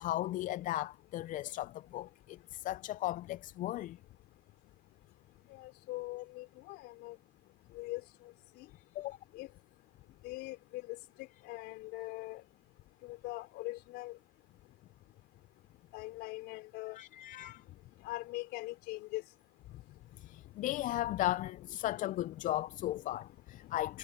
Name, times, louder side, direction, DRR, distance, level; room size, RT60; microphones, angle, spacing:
voice 1, 0.0-4.0 9.0-9.2 17.0-17.6 20.2-24.0, left 14 dB, 45° left, 0.5 m, -36 dB
voice 2, 5.5-7.2 7.7-8.7 9.3-9.5 10.2-12.4 13.0-14.2 15.9-17.0 18.0-19.2, left 19 dB, 65° left, 4.4 m, -42 dB
supercardioid pair, 95°, 19 cm